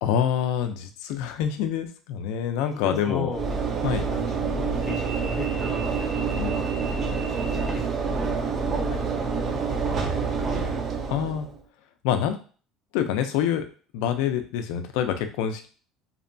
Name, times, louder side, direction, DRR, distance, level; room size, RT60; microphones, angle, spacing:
voice 1, 0.0-3.3 3.8-4.0 6.4-6.6 11.1-11.5 12.0-12.4 12.9-13.7 13.9-15.7, left 9 dB, 80° left, 8 dB, 0.4 m, -26 dB
voice 2, 2.6-3.5 4.0-6.7 7.5-8.0 8.9-9.8 10.2-11.1, left 3 dB, 25° left, 1 dB, 0.5 m, -38 dB
Train / Engine / Alarm, 3.3-11.6, right 5 dB, 30° right, 0.3 m, -27 dB
2.7 x 2.2 x 2.5 m, 0.39 s
cardioid pair, 170°, 0 cm